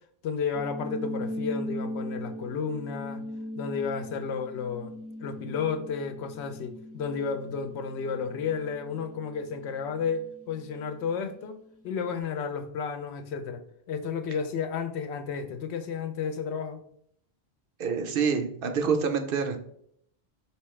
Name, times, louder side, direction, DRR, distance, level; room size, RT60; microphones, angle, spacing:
voice 1, 0.2-3.2 3.6-4.9 5.2-11.6 11.8-13.6 13.9-16.8, left 6 dB, 85° left, 9 dB, 0.9 m, -32 dB
sound 1, 0.5-11.4, left 1 dB, 20° right, 0.4 m, -40 dB
voice 2, 17.8-19.6, right 6 dB, 65° right, 6 dB, 0.7 m, -27 dB
4.5 x 2.9 x 3.1 m, 0.68 s
omnidirectional pair, 1.1 m